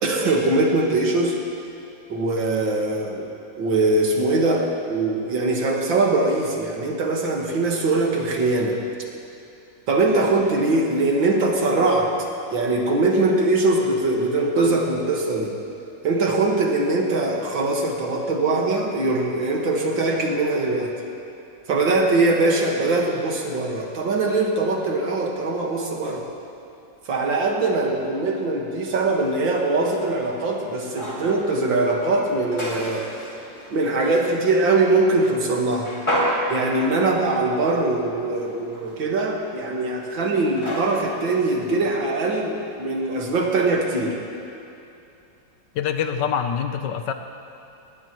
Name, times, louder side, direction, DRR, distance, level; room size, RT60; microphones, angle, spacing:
voice 1, 0.0-1.4 2.1-3.3 3.6-8.8 9.9-12.1 12.5-15.6 16.0-20.9 21.7-26.2 27.1-33.1 33.7-35.9 36.5-44.2, right 2 dB, 85° right, 0 dB, 2.4 m, -22 dB
sound 1, 29.0-42.8, equal, 15° left, 2.4 m, -33 dB
voice 2, 45.7-47.1, left 8 dB, 75° left, 7 dB, 1.4 m, -25 dB
20.0 x 18.0 x 3.1 m, 2.7 s
omnidirectional pair, 2.0 m